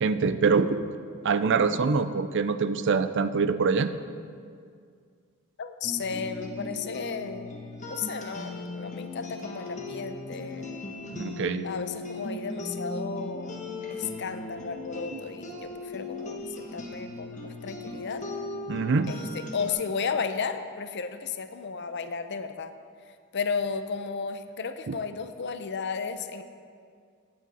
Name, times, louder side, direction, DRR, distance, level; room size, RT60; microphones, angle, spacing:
voice 1, 0.0-0.9 1.2-3.9 11.1-11.7 15.1-15.2 18.7-19.1 24.9-25.0, right 5 dB, 55° right, 12 dB, 0.5 m, -24 dB
voice 2, 5.6-7.6 7.9-10.7 11.6-13.6 13.9-18.2 19.1-22.7 23.3-26.4, left 5 dB, 55° left, 9 dB, 0.6 m, -34 dB
sound 1, 5.8-19.7, left 2 dB, 35° left, 1.3 m, -38 dB
15.0 x 8.6 x 4.2 m, 2.2 s
head